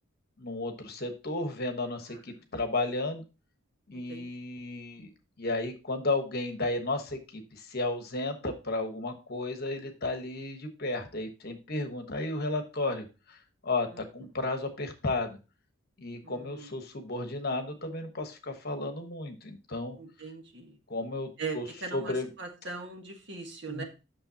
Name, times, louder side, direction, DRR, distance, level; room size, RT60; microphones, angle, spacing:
voice 1, 0.4-3.2 3.9-5.1 5.4-15.4 16.0-20.0 20.9-21.7 21.9-22.3 23.7-23.8, left 2 dB, 45° left, 6 dB, 1.2 m, -33 dB
voice 2, 3.9-4.3 13.9-14.0 16.2-16.7 20.0-20.7 21.4-23.8, right 4 dB, 55° right, 3 dB, 1.5 m, -40 dB
8.8 x 6.5 x 2.8 m, 0.30 s
head